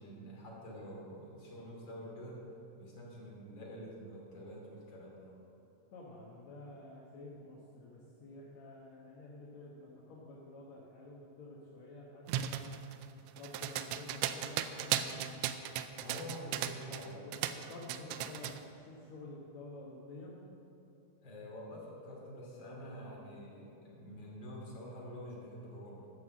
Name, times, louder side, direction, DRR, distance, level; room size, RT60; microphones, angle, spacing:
voice 1, 0.0-2.4 2.8-5.4 16.0-17.2 21.2-26.1, equal, 30° left, -4 dB, 2.6 m, -47 dB
voice 2, 5.9-12.8 13.3-15.3 17.1-20.4, left 2 dB, 65° left, -5 dB, 1.8 m, -50 dB
sound 1, 12.3-17.1 17.3-18.6, right 11 dB, 85° right, 2.7 m, -36 dB
11.0 x 6.9 x 7.3 m, 2.8 s
omnidirectional pair, 4.9 m